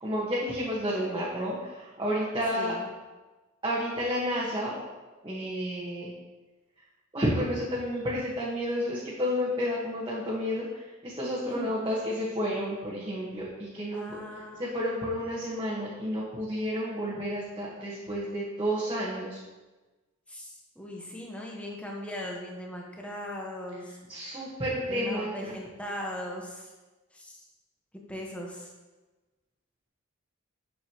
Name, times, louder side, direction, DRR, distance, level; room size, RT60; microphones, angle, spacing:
voice 1, 0.0-2.7 3.6-4.8 5.2-6.1 7.1-14.2 14.6-19.4 24.1-25.6, equal, 25° right, -7 dB, 1.4 m, -31 dB
voice 2, 2.5-2.9 11.5-11.8 13.9-14.6 20.3-24.0 24.9-26.7 27.1-27.4 28.1-28.7, equal, 5° left, -1 dB, 1.2 m, -39 dB
7.6 x 7.3 x 3.0 m, 1.2 s
head